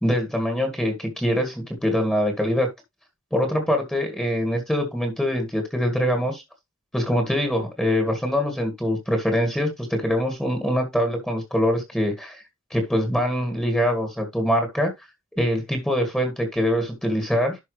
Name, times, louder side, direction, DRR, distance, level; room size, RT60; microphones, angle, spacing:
voice 1, 0.0-2.7 3.3-6.4 6.9-12.4 12.7-14.9 15.4-17.6, equal, 5° left, 2.0 m, -23 dB
11.5 x 5.2 x 3.3 m
head